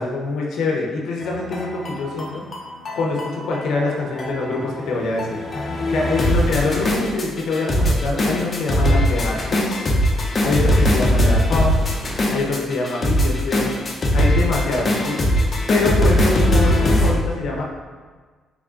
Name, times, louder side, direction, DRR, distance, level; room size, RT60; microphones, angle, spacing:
voice 1, 0.0-2.4 2.9-5.4 5.9-9.8 10.4-11.8 12.3-13.7 14.1-15.2 15.7-17.6, left 3 dB, 75° left, -2 dB, 0.7 m, -24 dB
sound 1, 1.2-17.1, left 1 dB, 40° left, 0.6 m, -20 dB
3.7 x 3.5 x 2.4 m, 1.4 s
cardioid pair, 90°, 0 cm